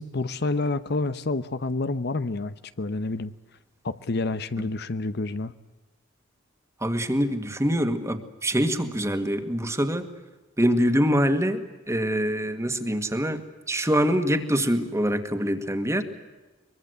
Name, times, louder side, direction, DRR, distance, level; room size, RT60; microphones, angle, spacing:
voice 1, 0.0-3.3 3.8-5.5, left 3 dB, 60° left, 13 dB, 0.9 m, -28 dB
voice 2, 6.8-10.1 10.6-11.6 11.9-13.4 13.7-16.0, equal, 15° right, 8 dB, 2.0 m, -24 dB
23.5 x 23.0 x 8.1 m, 1.2 s
head